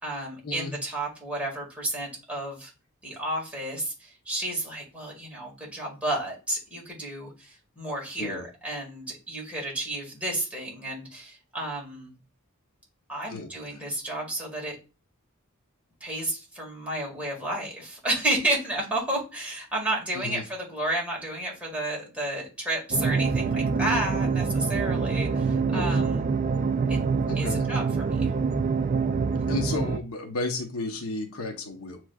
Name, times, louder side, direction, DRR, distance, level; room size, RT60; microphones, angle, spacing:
voice 1, 0.0-2.7 3.0-12.1 13.1-14.8 16.0-26.2 26.9-27.0 27.4-28.3, right 1 dB, 5° right, -2 dB, 1.8 m, -31 dB
voice 2, 13.3-13.8 20.1-20.4 25.7-26.0 27.3-27.6 29.5-32.0, left 2 dB, 75° left, 3 dB, 0.8 m, -33 dB
sound 1, 22.9-30.0, right 5 dB, 35° right, 0.3 m, -25 dB
7.3 x 3.1 x 2.3 m, 0.30 s
head